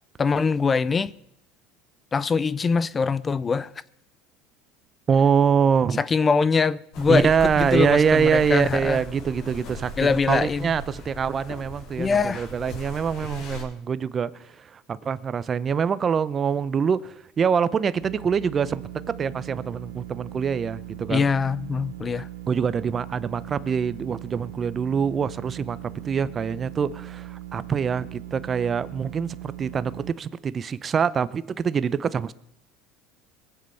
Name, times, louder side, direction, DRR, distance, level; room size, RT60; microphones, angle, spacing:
voice 1, 0.2-1.1 2.1-3.7 6.0-7.3 7.6-9.0 10.0-10.7 12.0-12.5 21.1-22.3, left 5 dB, 25° left, 0.5 m, -23 dB
voice 2, 5.1-6.0 7.1-18.8 19.2-21.2 22.5-25.8 26.0-32.3, right 6 dB, 30° right, 0.6 m, -24 dB
sound 1, 6.9-13.6, left 1 dB, 55° left, 3.6 m, -38 dB
sound 2, 18.0-30.1, right 15 dB, 90° right, 0.7 m, -39 dB
21.0 x 7.7 x 5.7 m
supercardioid pair, 115°, 0 cm